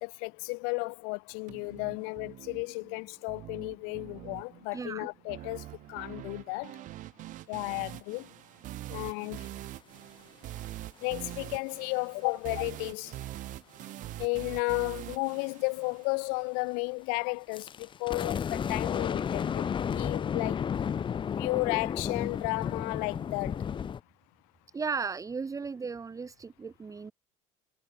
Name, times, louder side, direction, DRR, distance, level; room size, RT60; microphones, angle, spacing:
voice 1, 0.0-6.7 7.5-8.3 8.9-9.5 11.0-13.1 14.2-20.7 21.4-23.6, left 40 dB or more, 75° left, 0.7 m, -33 dB
sound 1, 1.5-16.5, right 15 dB, 60° right, 1.9 m, -44 dB
voice 2, 4.7-5.1 24.7-27.1, right 5 dB, 20° right, 1.1 m, -35 dB
sound 2, 17.5-24.0, left 7 dB, 35° left, 0.8 m, -32 dB
supercardioid pair, 80°, 15 cm